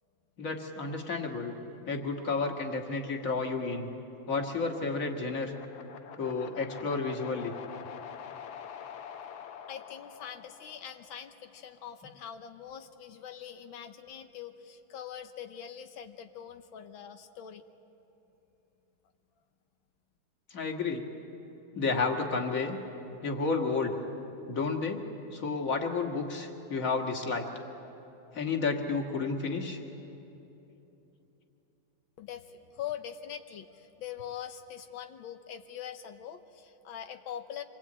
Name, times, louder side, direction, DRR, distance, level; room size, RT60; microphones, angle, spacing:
voice 1, 0.4-1.5 1.9-3.9 4.3-5.5 6.2-7.5 20.5-21.0 21.7-22.8 23.2-24.0 24.5-25.0 25.3-27.5 28.3-29.8, left 4 dB, 45° left, 2 dB, 2.2 m, -31 dB
sound 1, 5.5-11.6, left 8 dB, 60° left, 1.2 m, -46 dB
voice 2, 9.7-17.6 32.2-37.6, left 9 dB, 90° left, 7 dB, 1.7 m, -43 dB
26.5 x 21.0 x 8.8 m, 3.0 s
omnidirectional pair, 2.1 m